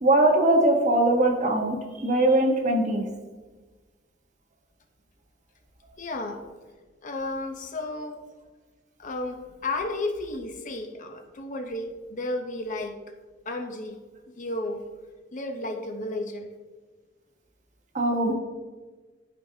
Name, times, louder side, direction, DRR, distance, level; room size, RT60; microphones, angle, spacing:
voice 1, 0.0-3.0 17.9-18.3, right 1 dB, 40° right, 1 dB, 1.1 m, -21 dB
voice 2, 6.0-6.4 7.0-8.2 9.0-13.0 13.5-14.0 14.3-14.8 15.3-16.5, left 2 dB, 45° left, 5 dB, 0.7 m, -33 dB
12.0 x 5.1 x 2.7 m, 1.3 s
head